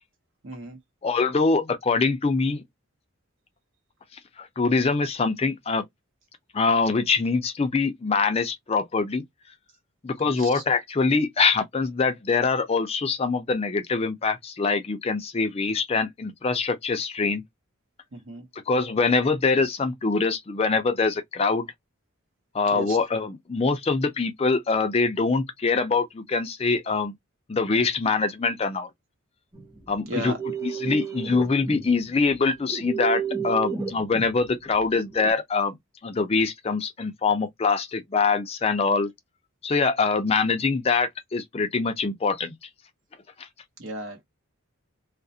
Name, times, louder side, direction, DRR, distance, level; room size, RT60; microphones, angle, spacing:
voice 1, 0.4-0.8 10.2-10.6 18.1-18.4 22.7-23.0 30.0-30.4 43.8-44.2, right 1 dB, 70° right, 1.0 m, -35 dB
voice 2, 1.0-2.6 4.4-5.8 6.5-9.2 10.0-17.4 18.5-21.7 22.5-27.1 27.5-28.9 29.9-30.3 30.6-35.7 36.0-39.1 39.6-42.5 43.4-43.5, left 4 dB, 30° left, 0.4 m, -24 dB
sound 1, 29.5-35.3, right 6 dB, 15° right, 0.8 m, -32 dB
2.3 x 2.0 x 2.6 m
head